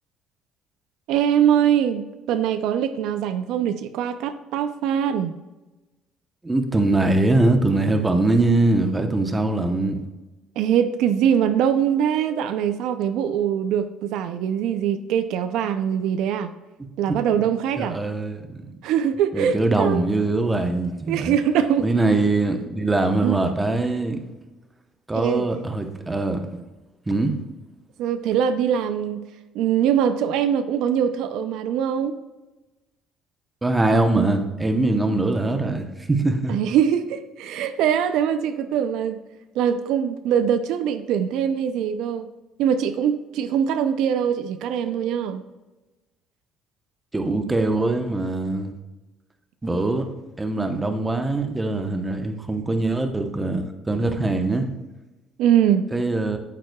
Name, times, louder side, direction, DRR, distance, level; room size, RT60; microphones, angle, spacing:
voice 1, 1.1-5.4 10.6-16.5 17.0-18.0 18.8-20.0 21.1-21.9 23.2-23.4 25.1-25.5 28.0-29.2 29.5-32.2 36.5-39.2 39.5-42.3 42.6-45.4 55.4-55.9, right 9 dB, 80° right, 9 dB, 0.5 m, -22 dB
voice 2, 6.4-10.0 17.1-17.2 17.8-18.7 19.3-21.4 21.8-24.2 25.1-26.6 27.1-27.4 33.6-36.5 47.1-48.7 49.6-50.1 50.4-54.7 55.9-56.4, right 2 dB, 15° right, 5 dB, 0.9 m, -22 dB
9.0 x 7.4 x 2.3 m, 1.1 s
cardioid pair, 115°, 0 cm